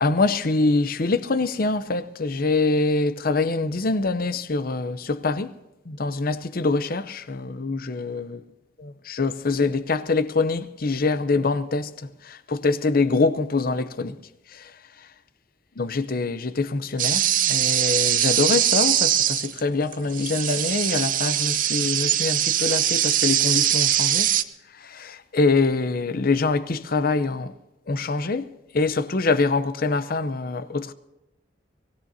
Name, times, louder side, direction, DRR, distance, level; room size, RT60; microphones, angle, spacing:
voice 1, 0.0-5.5 5.9-8.4 8.8-14.2 14.5-14.7 15.8-24.3 24.8-27.5 27.9-30.9, left 3 dB, 50° left, 0.7 m, -24 dB
sound 1, 17.0-19.6 19.9-24.4, right 11 dB, 45° right, 0.6 m, -22 dB
23.5 x 16.5 x 2.8 m
head